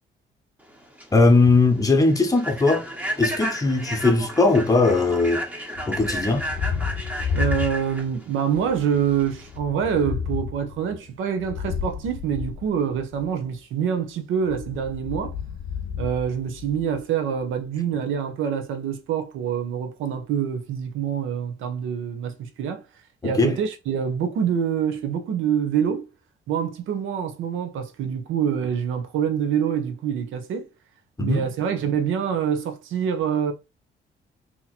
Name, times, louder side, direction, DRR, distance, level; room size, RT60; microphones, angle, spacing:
Human voice / Train, 0.7-9.6, equal, 10° right, 0.9 m, -33 dB
voice 1, 1.1-2.9 3.2-5.4 5.9-6.4 23.2-23.6 31.2-31.5, left 3 dB, 15° left, 1.0 m, -19 dB
Thunder, 5.7-8.2 8.5-13.3 14.4-17.0, left 7 dB, 60° left, 0.7 m, -32 dB
voice 2, 7.3-15.3 16.0-22.8 23.2-26.1 26.5-30.7 31.2-33.5, right 8 dB, 85° right, 0.8 m, -26 dB
2.9 x 2.8 x 4.1 m
cardioid pair, 90°, 20 cm